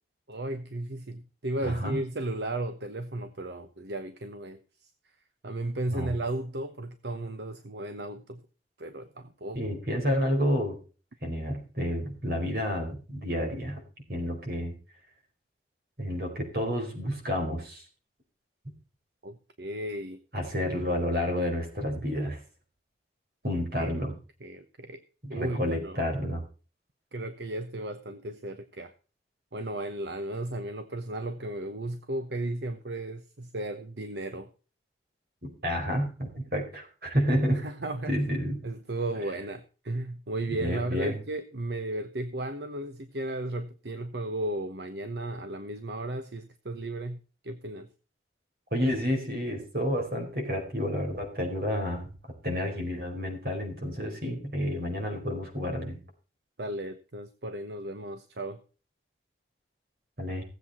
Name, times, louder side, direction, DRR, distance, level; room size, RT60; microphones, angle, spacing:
voice 1, 0.3-4.9 5.4-8.4 8.8-9.6 19.2-20.2 23.8-24.1 24.4-25.0 25.3-26.0 27.1-28.9 29.5-34.5 37.5-38.1 38.6-47.9 56.6-58.6, right 1 dB, 70° right, 9 dB, 1.0 m, -35 dB
voice 2, 1.6-2.0 5.9-6.1 9.5-10.8 11.2-13.8 14.1-14.7 16.0-17.8 20.3-22.4 23.4-24.1 25.2-26.4 35.4-37.6 38.1-38.6 40.5-41.1 48.7-52.1 52.4-56.0 60.2-60.4, equal, 55° right, 3 dB, 4.7 m, -30 dB
16.5 x 8.0 x 4.3 m, 0.36 s
head